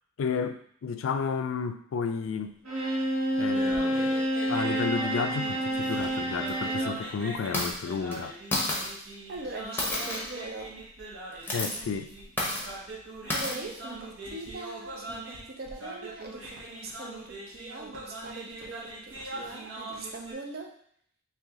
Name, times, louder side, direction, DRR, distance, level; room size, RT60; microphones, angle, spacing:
voice 1, 0.2-2.5 3.4-4.2 4.5-8.3 11.5-12.1, left 5 dB, 85° left, 9 dB, 0.4 m, -32 dB
Bowed string instrument, 2.7-7.0, right 1 dB, 90° right, 1.4 m, -28 dB
sound 1, 3.4-20.3, right 2 dB, 75° right, 1.0 m, -42 dB
sound 2, 5.9-6.1 6.5-6.6 7.4-7.7 8.1-8.2 8.5-8.9 9.8-10.4 11.3-11.8 12.4-12.7 13.3-13.6, left 1 dB, 10° left, 0.7 m, -30 dB
voice 2, 9.3-10.8 13.3-20.7, right 3 dB, 50° right, 1 dB, 0.6 m, -41 dB
3.2 x 2.9 x 3.6 m, 0.64 s
head